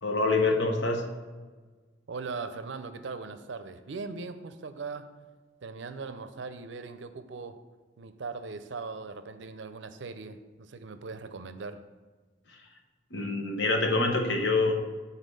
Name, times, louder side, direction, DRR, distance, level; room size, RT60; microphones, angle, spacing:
voice 1, 0.0-1.0 12.5-12.6 13.1-14.7, left 3 dB, 75° left, 3 dB, 1.0 m, -26 dB
voice 2, 2.1-5.1 5.6-7.6 8.0-11.9, right 4 dB, 70° right, 10 dB, 0.5 m, -39 dB
8.2 x 4.0 x 5.3 m, 1.4 s
head